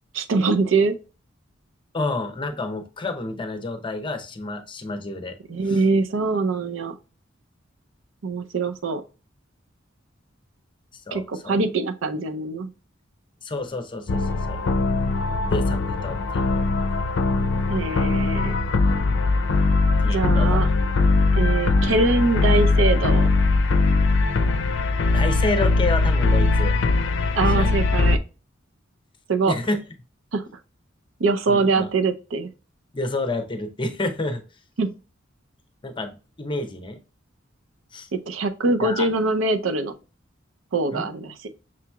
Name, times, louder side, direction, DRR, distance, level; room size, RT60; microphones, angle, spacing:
voice 1, 0.1-1.0 5.5-7.0 8.2-9.0 11.1-12.7 17.7-18.6 20.1-20.7 21.4-23.3 27.3-28.2 29.3-29.6 30.3-30.4 31.2-32.5 34.8-35.0 38.1-39.9 40.7-41.5, right 3 dB, 85° right, 0.6 m, -23 dB
voice 2, 1.9-5.4 5.7-5.8 11.1-11.6 13.4-14.6 15.5-16.6 20.0-20.6 25.1-26.7 27.5-27.8 29.5-29.8 31.5-31.9 32.9-34.4 35.8-37.0 37.9-38.1 38.8-39.1 40.9-41.1, left 2 dB, 25° left, 0.7 m, -29 dB
sound 1, 14.1-28.2, left 3 dB, 65° left, 0.5 m, -20 dB
6.1 x 2.9 x 2.2 m
head